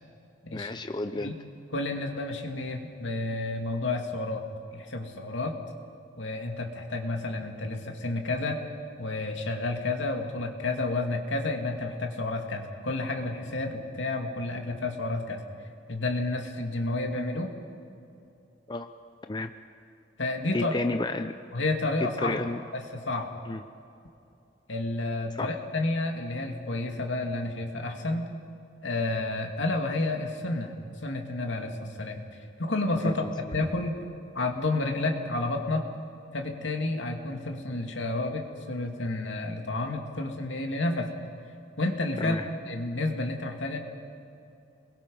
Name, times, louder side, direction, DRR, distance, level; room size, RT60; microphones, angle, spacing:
voice 1, 0.5-1.3 18.7-18.9 19.3-19.5 20.5-21.3 22.0-22.6 23.5-23.6 25.4-25.5 33.0-33.1 42.2-42.5, left 2 dB, 25° left, 8 dB, 0.5 m, -31 dB
voice 2, 1.7-4.4 4.7-5.6 6.2-8.6 9.0-15.4 15.9-17.5 20.2-20.7 21.5-22.4 22.7-23.3 24.7-28.3 28.8-30.7 31.0-32.2 32.6-34.0 34.3-35.9 36.3-41.1 41.8-42.4 42.7-43.8, left 2 dB, 75° left, 3 dB, 2.4 m, -30 dB
28.5 x 21.5 x 5.5 m, 2.7 s
head